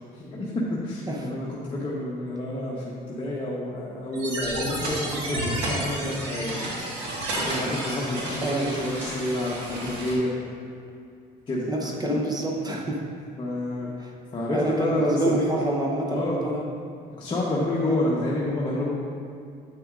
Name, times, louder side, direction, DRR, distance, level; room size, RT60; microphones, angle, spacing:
voice 1, 0.1-6.5 7.4-10.3 11.5-12.2 13.4-13.9 14.3-15.4 16.1-16.4 17.2-18.9, left 1 dB, 30° left, -6 dB, 1.0 m, -29 dB
sound 1, 4.1-10.1, right 1 dB, 90° right, 1.6 m, -31 dB
voice 2, 8.4-8.8 11.7-13.0 14.0-14.1 14.5-16.6 17.8-18.0, right 1 dB, 25° right, -1 dB, 0.7 m, -27 dB
8.2 x 6.7 x 2.5 m, 2.4 s
cardioid pair, 110°, 17 cm